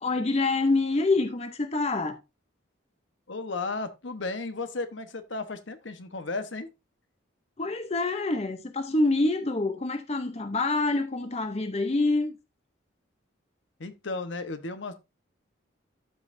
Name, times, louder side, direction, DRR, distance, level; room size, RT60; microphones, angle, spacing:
voice 1, 0.0-2.2 7.6-12.3, left 2 dB, 30° left, 0.7 m, -26 dB
voice 2, 3.3-6.7 13.8-14.9, left 3 dB, 70° left, 1.1 m, -34 dB
13.0 x 5.6 x 2.6 m
head